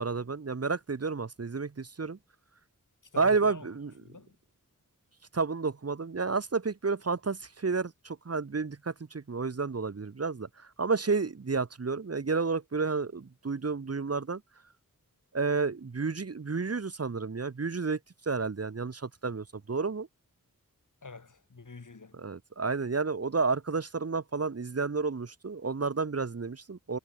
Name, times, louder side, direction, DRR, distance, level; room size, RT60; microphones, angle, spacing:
voice 1, 0.0-2.2 3.2-3.9 5.3-14.4 15.3-18.0 18.3-20.1 22.1-27.0, right 4 dB, 45° right, 1.3 m, -31 dB
voice 2, 3.1-3.7 4.0-4.4 21.0-22.2, left 4 dB, 65° left, 6.9 m, -47 dB
wide cardioid pair, 70°, 33 cm